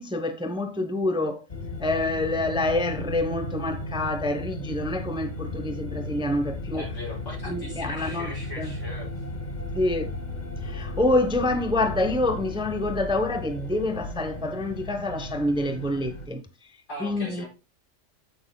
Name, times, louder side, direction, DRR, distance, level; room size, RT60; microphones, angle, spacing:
voice 1, 0.0-1.4 1.8-6.8 7.4-8.7 9.7-10.1 10.6-16.4 17.0-17.4, left 2 dB, 5° right, 0.7 m, -27 dB
sound 1, 1.5-16.3, left 2 dB, 35° left, 1.0 m, -35 dB
voice 2, 6.7-9.1 16.9-17.5, equal, 65° left, 5.8 m, -39 dB
9.4 x 8.6 x 2.2 m
omnidirectional pair, 1.4 m